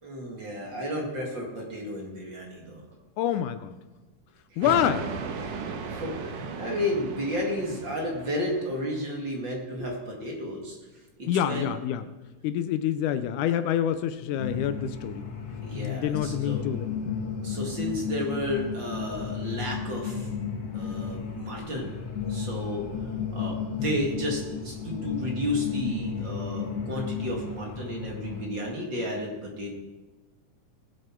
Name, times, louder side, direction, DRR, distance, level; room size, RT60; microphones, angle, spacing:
voice 1, 0.0-2.8 4.5-4.7 5.4-10.8 11.2-11.8 15.6-16.6 17.4-20.3 20.7-22.0 22.3-22.9 23.3-29.7, equal, 40° right, 0 dB, 2.2 m, -32 dB
voice 2, 3.2-3.7 4.6-5.1 11.3-12.0 12.4-15.3 15.7-17.3 23.8-23.9, left 10 dB, 80° left, 12 dB, 2.1 m, -27 dB
sound 1, 4.6-9.1, right 5 dB, 85° right, 2.7 m, -37 dB
sound 2, 14.4-28.5, left 6 dB, 55° left, 2.3 m, -33 dB
20.0 x 7.9 x 4.5 m, 1.2 s
omnidirectional pair, 3.7 m